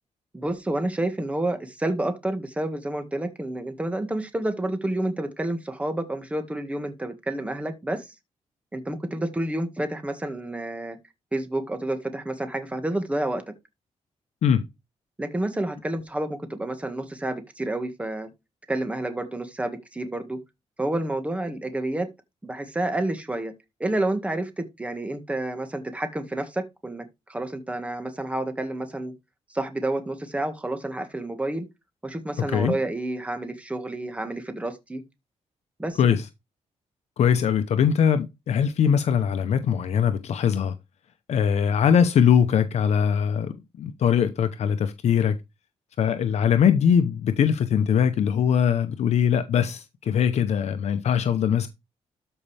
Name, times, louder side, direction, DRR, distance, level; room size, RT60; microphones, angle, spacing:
voice 1, 0.3-8.1 8.7-11.0 11.3-13.4 15.2-18.3 18.7-20.4 20.8-22.1 22.4-23.5 23.8-29.1 29.5-31.7 32.0-35.0 35.8-36.0, right 1 dB, 10° right, 1.7 m, -29 dB
voice 2, 37.2-40.7 41.3-45.4 46.0-51.7, left 8 dB, 65° left, 0.8 m, -21 dB
13.0 x 5.4 x 3.4 m
cardioid pair, 135°, 12 cm